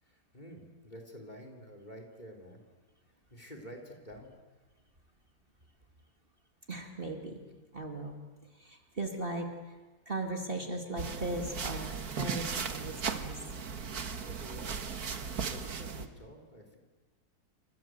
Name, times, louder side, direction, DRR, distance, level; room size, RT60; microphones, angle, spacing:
voice 1, 0.0-2.6 3.3-4.4 14.2-14.8 15.5-16.8, equal, 25° left, 4 dB, 3.9 m, -49 dB
voice 2, 6.7-9.8 10.1-13.4, right 2 dB, 35° right, 3 dB, 2.6 m, -38 dB
sound 1, 11.0-16.1, right 6 dB, 70° right, 2.0 m, -37 dB
29.0 x 26.0 x 7.8 m, 1.2 s
omnidirectional pair, 1.7 m